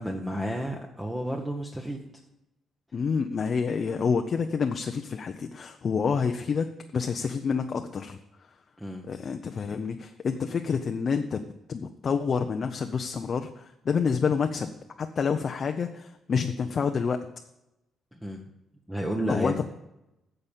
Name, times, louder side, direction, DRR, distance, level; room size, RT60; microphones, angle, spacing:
voice 1, 0.0-2.0 8.8-9.0 18.1-18.4 18.9-19.7, equal, 5° right, 1 dB, 1.2 m, -31 dB
voice 2, 2.9-8.2 9.1-11.4 11.7-14.7 15.0-17.2 19.3-19.7, left 6 dB, 45° left, 5 dB, 0.7 m, -28 dB
9.8 x 6.7 x 7.3 m, 0.91 s
cardioid pair, 90°, 0 cm